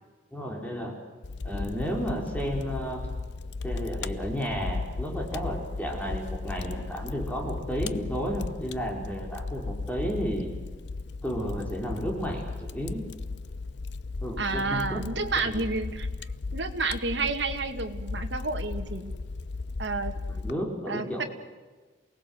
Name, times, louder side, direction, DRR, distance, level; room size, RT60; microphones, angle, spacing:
voice 1, 0.3-1.0 1.4-3.0 3.6-10.5 11.2-13.0 14.2-15.0 15.3-15.6 20.3-21.3, equal, 10° left, 0 dB, 4.4 m, -32 dB
Fire, 1.2-20.5, left 3 dB, 65° left, 0.7 m, -36 dB
voice 2, 14.4-16.1 16.5-19.1 19.8-20.1 20.9-21.2, right 3 dB, 75° right, 5 dB, 2.2 m, -30 dB
28.0 x 19.0 x 7.9 m, 1.3 s
head